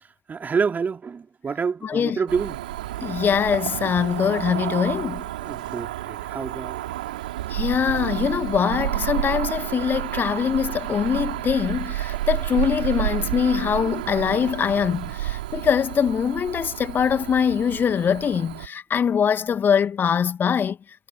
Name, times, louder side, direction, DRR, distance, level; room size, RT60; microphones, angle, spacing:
voice 1, 0.3-2.6 5.4-6.8, right 5 dB, 35° right, 4.0 m, -27 dB
voice 2, 1.8-2.2 3.0-5.2 7.5-20.8, left 7 dB, 45° left, 1.7 m, -23 dB
Cricket / Motor vehicle (road), 2.3-18.7, right 15 dB, 75° right, 5.6 m, -30 dB
figure-of-eight pair, 45°, 5 cm